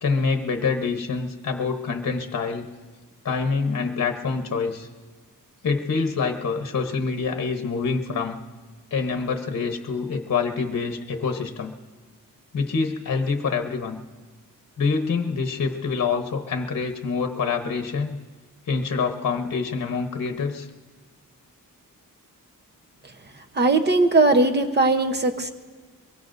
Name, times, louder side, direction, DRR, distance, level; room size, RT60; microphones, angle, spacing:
voice 1, 0.0-2.7 3.2-4.9 5.6-8.4 8.9-11.7 12.5-14.0 14.8-18.2 18.7-20.7, left 5 dB, 50° left, 5 dB, 1.0 m, -26 dB
voice 2, 23.5-25.5, right 2 dB, 30° right, 6 dB, 0.9 m, -19 dB
23.5 x 22.5 x 2.6 m, 1.4 s
wide cardioid pair, 160°, 34 cm